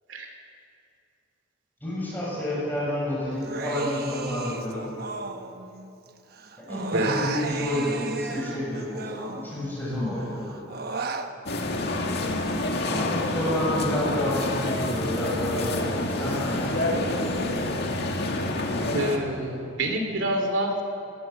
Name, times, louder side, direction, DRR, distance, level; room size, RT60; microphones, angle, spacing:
voice 1, 1.8-4.9 6.6-10.6 12.8-17.4, left 1 dB, 10° left, -7 dB, 6.8 m, -30 dB
Human voice, 3.4-6.1 6.3-9.8 10.2-11.3, right 4 dB, 55° right, 1.1 m, -34 dB
sound 1, 11.5-19.2, left 2 dB, 55° left, 2.0 m, -27 dB
voice 2, 18.9-20.8, right 1 dB, 80° right, 3 dB, 2.5 m, -27 dB
21.0 x 18.0 x 7.0 m, 2.8 s
head